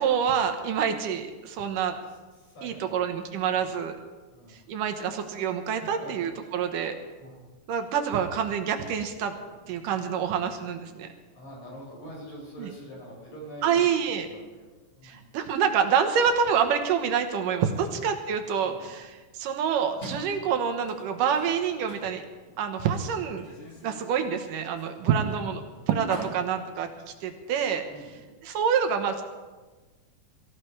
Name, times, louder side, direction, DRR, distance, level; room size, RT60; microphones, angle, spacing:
voice 1, 0.0-1.9 2.6-4.0 4.7-6.9 7.7-9.3 9.7-11.1 12.6-12.7 13.6-14.3 15.0-22.2 22.6-23.5 23.8-25.6 25.9-26.9 27.2-27.8 28.4-29.2, right 7 dB, 90° right, 6 dB, 2.8 m, -27 dB
voice 2, 2.1-3.1 4.3-4.6 5.6-6.1 6.4-6.6 7.2-7.4 9.6-10.1 11.3-15.2 17.6-17.9 18.6-18.9 25.0-25.4 26.1-26.6 27.8-28.2, equal, 55° left, -4 dB, 6.8 m, -46 dB
sound 1, 20.0-27.8, equal, 30° left, 2.8 m, -45 dB
23.5 x 15.0 x 3.3 m, 1.3 s
omnidirectional pair, 3.6 m